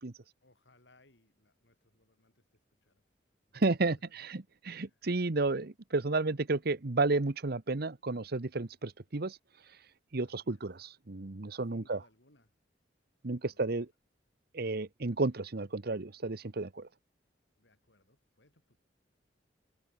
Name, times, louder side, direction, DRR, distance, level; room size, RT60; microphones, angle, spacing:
voice 1, 0.4-3.0 3.5-3.6 3.9-4.3 4.7-5.0 10.2-10.6 11.5-12.5 13.3-13.7 17.6-18.8, left 2 dB, 70° left, 4.7 m, -67 dB
voice 2, 3.5-9.4 10.1-12.0 13.2-13.9 14.5-16.9, right 3 dB, 60° right, 1.0 m, -32 dB
head